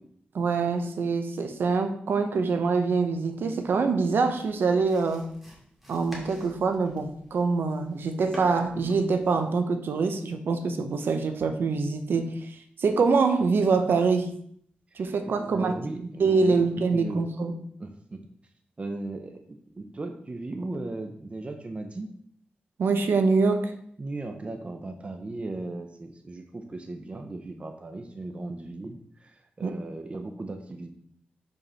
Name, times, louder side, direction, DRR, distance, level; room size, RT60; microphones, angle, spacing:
voice 1, 0.3-5.3 5.9-14.3 15.0-17.5 22.8-23.8 29.6-29.8, right 4 dB, 80° right, 7 dB, 0.8 m, -25 dB
sound 1, 4.3-9.5, equal, 5° right, 2.2 m, -47 dB
voice 2, 14.9-17.2 17.8-18.3 18.8-22.1 24.0-30.9, right 2 dB, 35° right, 5 dB, 0.8 m, -37 dB
5.4 x 4.7 x 5.6 m, 0.65 s
wide cardioid pair, 95°, 4 cm